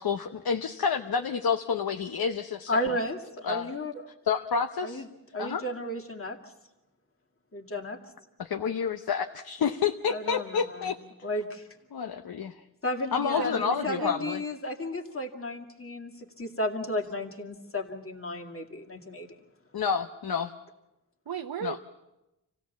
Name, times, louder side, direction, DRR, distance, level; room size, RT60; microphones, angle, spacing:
voice 1, 0.0-2.8 3.4-3.7 4.2-5.0 5.4-5.6 8.4-11.0 11.9-12.6 13.1-14.4 19.7-20.5 21.6-21.8, left 6 dB, 65° left, 7 dB, 0.9 m, -29 dB
voice 2, 2.7-4.0 4.8-5.1 5.3-6.5 7.5-8.0 10.1-10.9 11.2-11.7 12.8-19.3, left 1 dB, 35° left, 1 dB, 2.2 m, -33 dB
voice 3, 13.1-14.1 21.3-21.8, right 8 dB, 70° right, 5 dB, 0.8 m, -35 dB
27.5 x 16.5 x 7.1 m, 0.98 s
wide cardioid pair, 95°, 39 cm